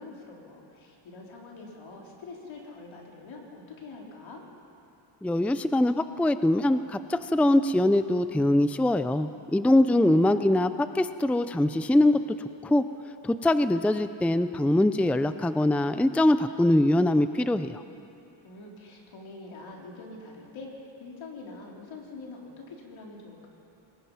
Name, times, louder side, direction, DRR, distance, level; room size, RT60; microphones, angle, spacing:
voice 1, 0.0-4.4 9.9-10.6 18.4-23.5, left 3 dB, 75° left, -1 dB, 4.2 m, -45 dB
voice 2, 5.2-12.2 12.6-12.8 13.2-17.8, left 1 dB, 5° left, 11 dB, 0.5 m, -23 dB
26.5 x 20.5 x 5.7 m, 2.8 s
cardioid pair, 105°, 46 cm